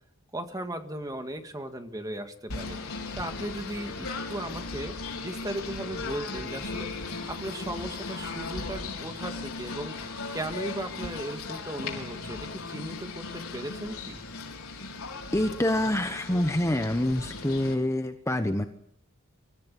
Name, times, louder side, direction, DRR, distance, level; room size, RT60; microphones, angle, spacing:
voice 1, 0.3-10.0 10.3-14.2, right 1 dB, 15° right, 6 dB, 2.0 m, -37 dB
Singing / Bird, 2.5-17.7, left 3 dB, 90° left, 4.6 m, -37 dB
voice 2, 15.3-18.7, left 1 dB, 15° left, 7 dB, 1.0 m, -26 dB
24.5 x 14.5 x 8.4 m, 0.72 s
head